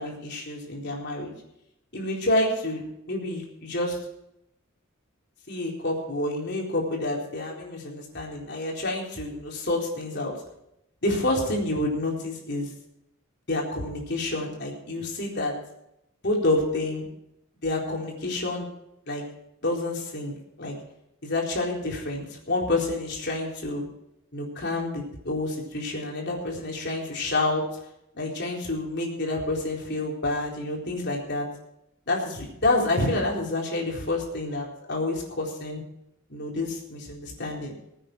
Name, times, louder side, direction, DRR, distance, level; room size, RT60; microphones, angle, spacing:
voice 1, 0.0-1.3 1.9-4.0 5.5-10.3 11.0-12.7 13.5-15.5 16.2-17.0 17.6-18.7 19.1-19.2 19.6-20.8 21.2-23.9 24.3-27.6 28.1-31.5 32.1-35.8 36.3-37.7, left 2 dB, 50° left, -2 dB, 4.0 m, -28 dB
21.5 x 9.1 x 4.5 m, 0.81 s
head